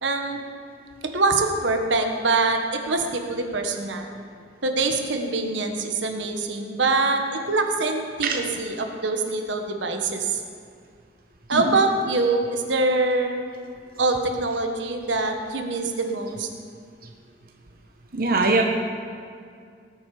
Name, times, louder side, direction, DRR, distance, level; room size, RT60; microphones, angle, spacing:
voice 1, 0.0-0.4 1.1-4.1 4.6-7.2 7.5-10.4 11.5-13.4 14.0-16.5, right 3 dB, 85° right, 4 dB, 1.3 m, -24 dB
voice 2, 18.1-18.6, right 3 dB, 50° right, 1 dB, 1.0 m, -21 dB
18.5 x 8.1 x 5.0 m, 2.2 s
head